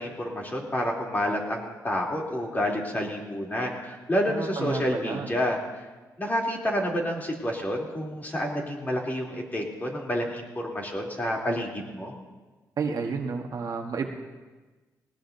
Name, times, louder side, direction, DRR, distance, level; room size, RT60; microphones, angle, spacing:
voice 1, 0.0-5.6 6.2-12.1, equal, 25° left, -2 dB, 3.1 m, -29 dB
voice 2, 4.3-5.3 12.8-14.1, right 5 dB, 60° right, 3 dB, 1.3 m, -31 dB
19.5 x 18.5 x 2.7 m, 1.2 s
cardioid pair, 90°, 7 cm